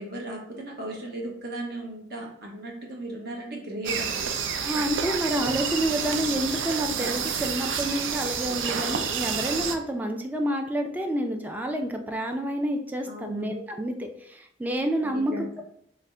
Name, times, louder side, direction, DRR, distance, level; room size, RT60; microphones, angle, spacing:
voice 1, 0.0-4.3 13.1-13.6 15.0-15.5, right 1 dB, 60° right, -1 dB, 0.8 m, -36 dB
sound 1, 3.8-9.8, right 7 dB, 80° right, 0.4 m, -29 dB
voice 2, 4.6-15.3, equal, 10° right, 4 dB, 0.3 m, -29 dB
3.3 x 2.0 x 3.7 m, 0.70 s
head